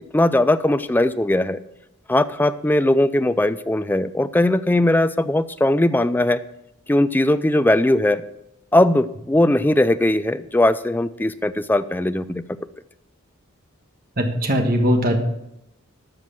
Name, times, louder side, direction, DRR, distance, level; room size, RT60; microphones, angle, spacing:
voice 1, 0.1-1.6 2.1-6.4 6.9-8.2 8.7-12.4, left 1 dB, 10° left, 12 dB, 0.3 m, -19 dB
voice 2, 14.2-15.2, equal, 40° right, 4 dB, 1.6 m, -19 dB
13.0 x 6.2 x 7.5 m, 0.84 s
head